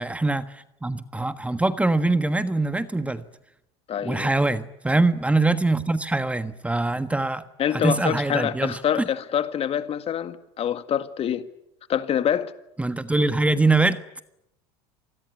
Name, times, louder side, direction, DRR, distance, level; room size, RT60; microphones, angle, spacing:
voice 1, 0.0-3.2 4.0-7.4 7.7-9.0 12.8-14.0, right 2 dB, 10° right, 1.4 m, -23 dB
voice 2, 3.9-4.3 7.6-11.5 11.9-12.5, left 9 dB, 40° left, 1.9 m, -26 dB
27.0 x 20.0 x 9.6 m
supercardioid pair, 95°, 15 cm